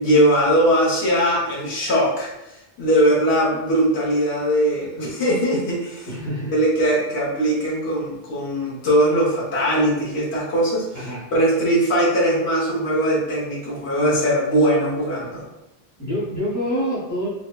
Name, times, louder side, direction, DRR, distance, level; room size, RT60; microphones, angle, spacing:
voice 1, 0.0-2.3 2.8-6.1 6.5-10.9 11.3-15.4, equal, 80° left, -6 dB, 1.2 m, -20 dB
voice 2, 6.0-6.5 10.9-11.3 16.0-17.3, equal, 20° left, -10 dB, 0.8 m, -26 dB
4.4 x 2.1 x 2.2 m, 0.91 s
omnidirectional pair, 1.1 m